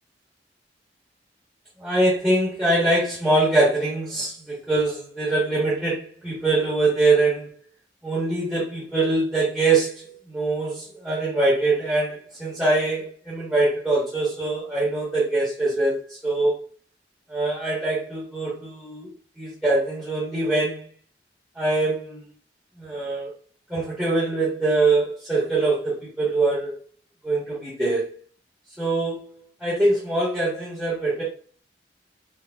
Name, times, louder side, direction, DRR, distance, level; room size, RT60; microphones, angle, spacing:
voice 1, 1.8-7.5 8.0-16.5 17.3-20.9 21.5-22.3 22.8-23.3 23.7-26.8 27.2-28.1 28.8-31.2, right 2 dB, 10° right, -9 dB, 1.1 m, -23 dB
4.5 x 2.3 x 2.3 m, 0.44 s
head